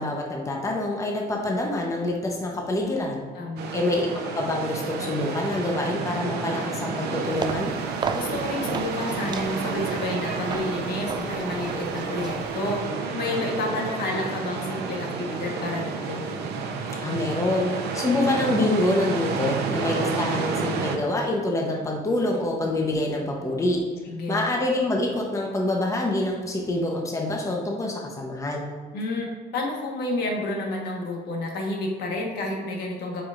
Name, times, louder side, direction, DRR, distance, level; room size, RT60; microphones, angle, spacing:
voice 1, 0.0-3.2 3.7-7.7 17.0-17.7 17.9-23.8 24.3-28.7, left 2 dB, 20° left, 0 dB, 0.9 m, -26 dB
voice 2, 3.3-3.7 8.1-16.2 24.0-24.4 28.9-33.2, left 2 dB, 70° left, 0 dB, 1.4 m, -30 dB
sound 1, 3.6-21.0, right 5 dB, 75° right, 0.8 m, -30 dB
sound 2, 7.2-12.9, right 5 dB, 25° right, 0.4 m, -36 dB
7.6 x 5.0 x 2.5 m, 1.5 s
cardioid pair, 110°, 17 cm